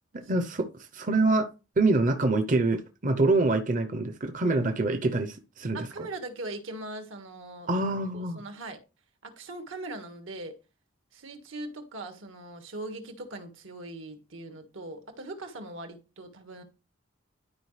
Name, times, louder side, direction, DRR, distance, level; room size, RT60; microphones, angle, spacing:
voice 1, 0.1-1.5 1.8-5.9 7.7-8.4, right 2 dB, 40° right, 0.7 m, -25 dB
voice 2, 5.7-7.7 8.1-8.8 9.2-10.6 11.1-16.6, right 2 dB, 75° right, 1.7 m, -40 dB
12.5 x 4.9 x 3.3 m
head